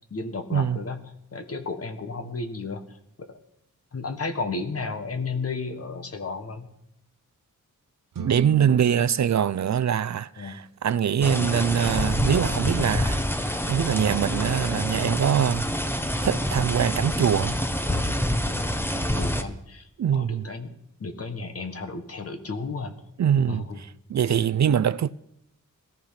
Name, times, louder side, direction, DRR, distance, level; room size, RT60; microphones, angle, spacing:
voice 1, 0.1-1.0 1.3-2.8 3.2-3.4 3.9-6.7 10.4-10.6 18.9-20.7 21.0-23.0 23.5-23.8, left 3 dB, 45° left, 1.6 m, -33 dB
sound 1, 8.1-10.5, right 7 dB, 85° right, 1.3 m, -39 dB
voice 2, 8.2-15.7 16.2-17.6 20.0-20.5 23.2-25.1, right 8 dB, 60° right, 0.5 m, -23 dB
sound 2, 11.2-19.4, equal, 5° left, 0.9 m, -27 dB
18.0 x 13.5 x 5.8 m
wide cardioid pair, 175°, 33 cm